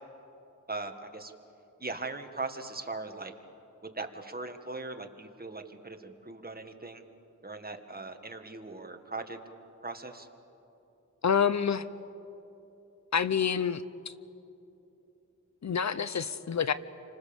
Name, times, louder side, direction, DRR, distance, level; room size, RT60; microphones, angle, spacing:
voice 1, 0.7-1.3 1.8-3.3 3.9-7.0 7.4-9.4 9.8-10.3, right 3 dB, 30° right, 6 dB, 1.8 m, -39 dB
voice 2, 11.2-11.8 13.1-14.1 15.6-16.7, left 7 dB, 60° left, 14 dB, 0.8 m, -28 dB
29.5 x 25.5 x 7.1 m, 2.9 s
wide cardioid pair, 80°, 31 cm